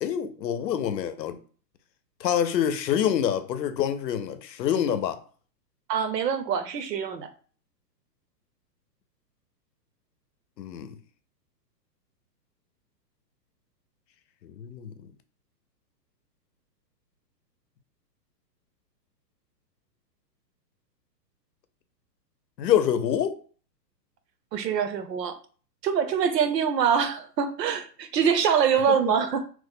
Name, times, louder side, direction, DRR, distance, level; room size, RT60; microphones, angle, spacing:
voice 1, 0.0-1.4 2.2-5.2 10.6-11.0 14.4-14.9 22.6-23.4, left 9 dB, 90° left, 0.7 m, -26 dB
voice 2, 5.9-7.3 24.5-25.3 25.8-29.4, right 7 dB, 80° right, 0.7 m, -24 dB
3.1 x 2.1 x 3.5 m
hypercardioid pair, 170°, 49 cm